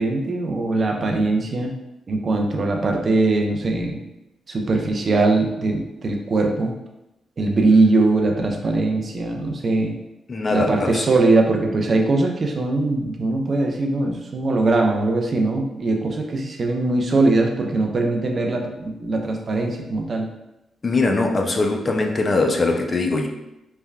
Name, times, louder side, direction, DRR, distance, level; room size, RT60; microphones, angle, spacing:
voice 1, 0.0-1.7 2.1-4.0 4.5-6.7 7.4-10.0 10.5-20.3, right 2 dB, 50° right, 2 dB, 0.4 m, -21 dB
voice 2, 10.3-11.1 20.8-23.3, left 3 dB, 40° left, 3 dB, 0.4 m, -21 dB
3.3 x 2.2 x 2.2 m, 0.91 s
hypercardioid pair, 40°, 0 cm